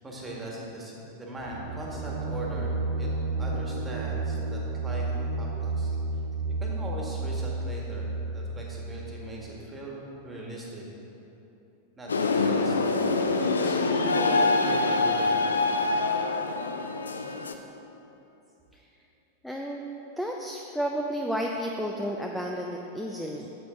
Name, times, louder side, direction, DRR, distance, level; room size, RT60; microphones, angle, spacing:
voice 1, 0.0-3.1 3.4-5.1 5.4-5.9 6.6-10.9 12.0-13.0 13.3-15.4, right 1 dB, 15° right, -3 dB, 1.7 m, -39 dB
sound 1, 1.4-9.1, right 3 dB, 45° right, 0.8 m, -31 dB
sound 2, 12.1-17.5, left 3 dB, 70° left, 0.5 m, -25 dB
voice 2, 19.4-19.8 20.2-23.5, equal, ahead, 0 dB, 0.5 m, -32 dB
8.6 x 7.4 x 3.7 m, 3.0 s
figure-of-eight pair, 90°, 0 cm